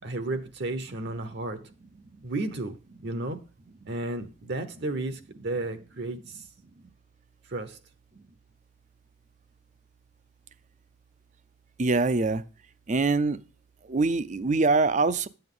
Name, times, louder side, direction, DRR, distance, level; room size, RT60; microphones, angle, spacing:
voice 1, 0.0-1.6 2.2-2.8 3.0-3.4 3.9-6.4 7.5-7.8, right 2 dB, 55° right, 0.9 m, -33 dB
voice 2, 11.8-12.4 12.9-13.4 13.9-15.3, right 3 dB, 35° right, 0.5 m, -23 dB
10.0 x 7.8 x 3.8 m
head